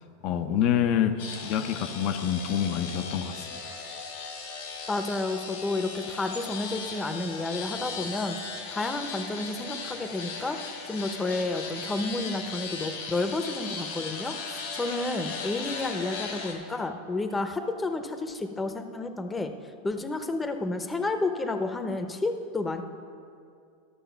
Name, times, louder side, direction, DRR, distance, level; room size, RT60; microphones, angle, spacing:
voice 1, 0.2-1.2 1.4-3.5, left 9 dB, 50° left, 10 dB, 0.7 m, -26 dB
sound 1, 1.2-16.5, left 4 dB, 75° left, 1.9 m, -37 dB
voice 2, 4.9-10.6 10.9-19.5 19.8-22.8, left 2 dB, 15° left, 7 dB, 0.8 m, -31 dB
12.5 x 6.5 x 5.8 m, 2.4 s
hypercardioid pair, 105°, 0 cm